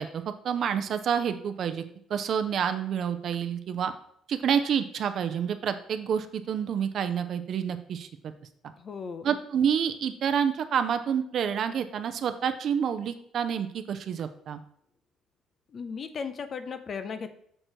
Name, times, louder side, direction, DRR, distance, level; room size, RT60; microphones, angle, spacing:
voice 1, 0.0-1.8 2.1-3.9 4.3-8.3 9.2-14.6, right 8 dB, 45° right, 9 dB, 0.5 m, -28 dB
voice 2, 8.8-9.3 15.7-17.3, left 5 dB, 35° left, 10 dB, 0.5 m, -36 dB
6.5 x 4.5 x 4.4 m, 0.69 s
cardioid pair, 155°, 0 cm